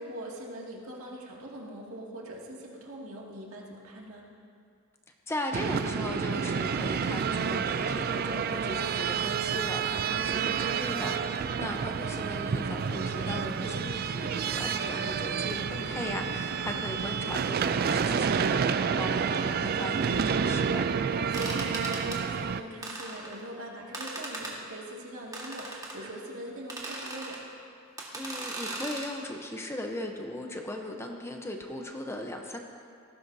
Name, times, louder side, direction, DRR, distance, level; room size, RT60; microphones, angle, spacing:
voice 1, 0.0-4.3 11.3-11.8 16.4-16.7 21.1-27.4, right 1 dB, 75° right, -3 dB, 2.3 m, -42 dB
voice 2, 5.3-20.8 28.1-32.6, left 1 dB, 10° left, 2 dB, 0.8 m, -38 dB
sound 1, 5.5-22.6, right 6 dB, 45° right, 0.4 m, -29 dB
sound 2, 21.3-22.2 22.8-23.4 23.9-24.6 25.3-26.0 26.7-27.4 28.0-29.1, right 2 dB, 15° right, 1.6 m, -38 dB
18.5 x 15.0 x 2.8 m, 2.3 s
head